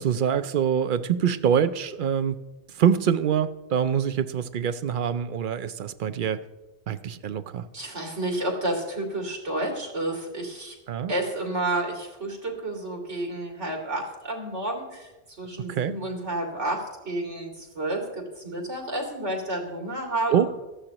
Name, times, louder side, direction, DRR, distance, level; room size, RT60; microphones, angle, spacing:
voice 1, 0.0-2.4 2.8-6.4 6.9-7.7 10.9-11.1 15.7-16.0 20.3-20.5, right 8 dB, 55° right, 13 dB, 0.6 m, -25 dB
voice 2, 7.7-10.7 11.1-15.1 15.4-20.4, right 1 dB, 90° right, 0 dB, 3.1 m, -30 dB
18.0 x 13.5 x 3.0 m, 1.1 s
omnidirectional pair, 1.2 m